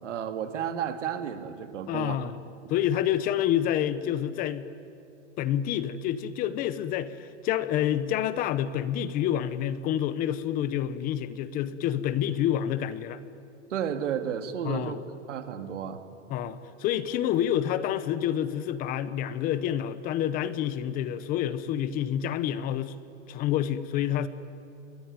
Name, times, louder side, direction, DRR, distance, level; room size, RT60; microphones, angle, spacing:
voice 1, 0.0-2.2 13.7-15.0 15.3-16.0, right 8 dB, 85° right, 9 dB, 2.5 m, -32 dB
voice 2, 1.9-2.4 2.7-4.7 5.4-13.2 14.6-15.0 16.3-22.9 23.3-24.3, left 10 dB, 25° left, 15 dB, 0.7 m, -28 dB
28.0 x 21.0 x 9.6 m, 2.8 s
supercardioid pair, 160°, 35 cm